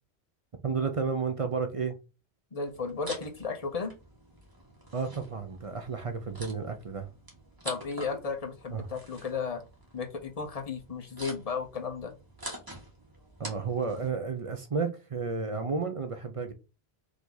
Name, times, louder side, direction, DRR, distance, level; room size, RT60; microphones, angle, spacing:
voice 1, 0.6-2.0 4.9-7.1 8.7-8.9 13.4-16.5, right 5 dB, 40° right, 0.6 m, -32 dB
voice 2, 2.5-3.9 7.6-9.6 9.9-12.1, left 5 dB, 40° left, 0.9 m, -34 dB
sound 1, 2.6-14.1, right 1 dB, 20° right, 1.3 m, -47 dB
4.9 x 2.7 x 3.9 m
omnidirectional pair, 1.1 m